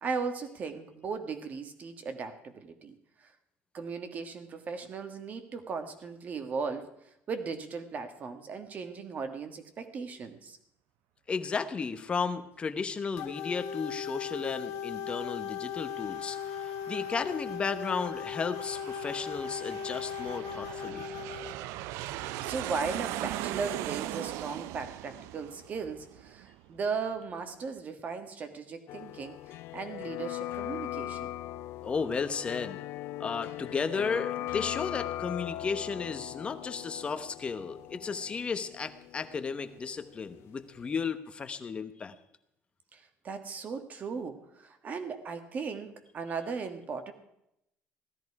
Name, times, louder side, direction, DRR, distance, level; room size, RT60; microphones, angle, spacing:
voice 1, 0.0-3.0 3.2-3.3 3.7-6.9 7.3-10.6 22.1-29.4 29.7-31.3 42.9-47.1, right 5 dB, 35° right, 8 dB, 1.6 m, -37 dB
voice 2, 11.3-21.1 31.8-32.8 33.2-42.1, left 5 dB, 25° left, 10 dB, 1.0 m, -34 dB
sound 1, 13.2-21.6, left 8 dB, 80° left, 1.2 m, -38 dB
Aircraft, 15.7-26.9, right 15 dB, 85° right, 0.5 m, -40 dB
sound 2, 28.9-40.6 40.8-40.9, left 14 dB, 65° left, 0.4 m, -39 dB
16.5 x 13.0 x 4.8 m, 0.81 s
cardioid pair, 155°, 5 cm